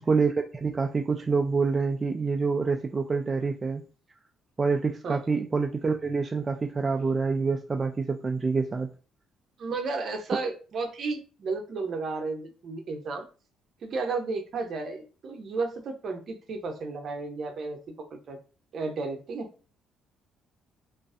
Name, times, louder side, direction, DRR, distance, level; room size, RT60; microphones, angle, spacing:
voice 1, 0.1-3.8 4.6-8.9, right 4 dB, 35° right, 0.3 m, -26 dB
voice 2, 9.6-13.3 13.8-18.4 18.7-19.5, right 3 dB, 60° right, 0.7 m, -33 dB
2.4 x 2.2 x 2.4 m
hypercardioid pair, 55°, 0 cm